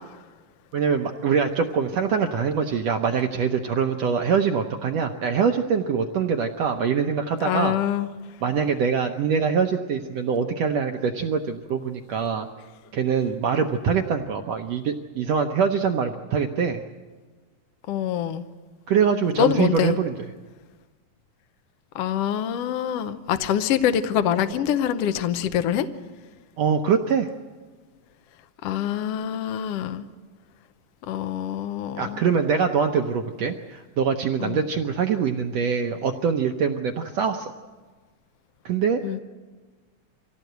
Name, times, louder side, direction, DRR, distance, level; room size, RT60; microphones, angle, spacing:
voice 1, 0.7-7.7 8.4-12.5 12.9-16.8 18.9-20.1 26.6-27.3 32.0-37.5 38.6-39.0, right 6 dB, 75° right, 4 dB, 1.5 m, -24 dB
voice 2, 7.4-8.1 17.9-18.5 19.4-20.0 21.9-25.9 28.6-30.1 31.1-32.2 34.4-34.6 39.0-39.2, left 10 dB, 80° left, 9 dB, 1.4 m, -25 dB
24.5 x 17.0 x 8.0 m, 1.4 s
omnidirectional pair, 3.9 m